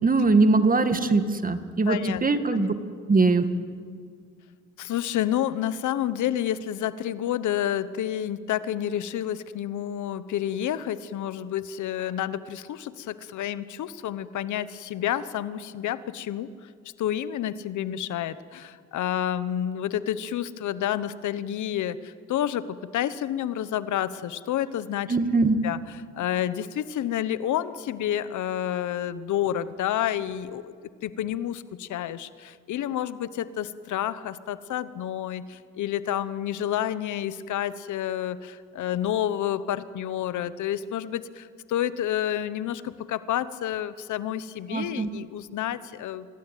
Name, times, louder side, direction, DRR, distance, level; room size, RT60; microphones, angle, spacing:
voice 1, 0.0-2.7 3.1-3.5 25.1-25.6 44.7-45.1, right 3 dB, 30° right, 9 dB, 1.9 m, -21 dB
voice 2, 1.9-2.2 2.5-2.6 4.8-16.7 17.0-25.2 25.6-30.7 31.0-46.3, left 11 dB, 75° left, 15 dB, 1.1 m, -29 dB
26.5 x 19.0 x 9.2 m, 2.1 s
cardioid pair, 90°, 30 cm